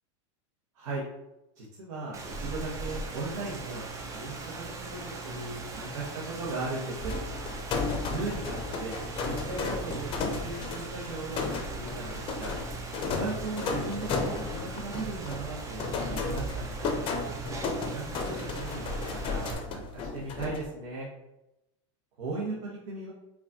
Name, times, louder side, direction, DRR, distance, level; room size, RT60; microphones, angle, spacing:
voice 1, 1.6-7.1 8.0-9.0 9.2-12.5 13.0-16.9 17.8-18.8 19.1-21.1 22.2-23.1, right 2 dB, 75° right, -4 dB, 1.0 m, -37 dB
Rain, 2.1-19.5, right 3 dB, 20° right, 0.4 m, -39 dB
sound 1, 7.0-20.7, left 4 dB, 30° left, 0.6 m, -34 dB
4.6 x 2.4 x 2.7 m, 0.92 s
supercardioid pair, 135°, 16 cm